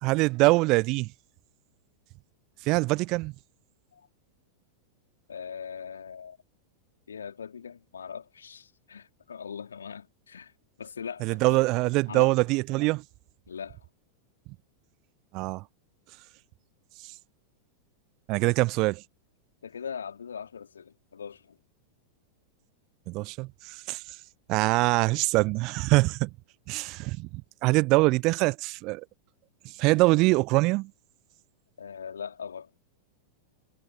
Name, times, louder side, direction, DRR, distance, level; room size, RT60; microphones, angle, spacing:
voice 1, 0.0-1.1 2.6-3.3 11.2-13.0 15.3-15.6 18.3-19.0 23.1-24.0 24.5-26.3 26.7-29.0 29.6-30.9, right 23 dB, 40° right, 0.5 m, -24 dB
voice 2, 5.3-6.4 7.1-10.5 10.8-11.6 12.1-12.3 13.5-13.9 19.6-21.6 31.8-32.7, left 7 dB, 70° left, 2.8 m, -40 dB
figure-of-eight pair, 90°, 0 cm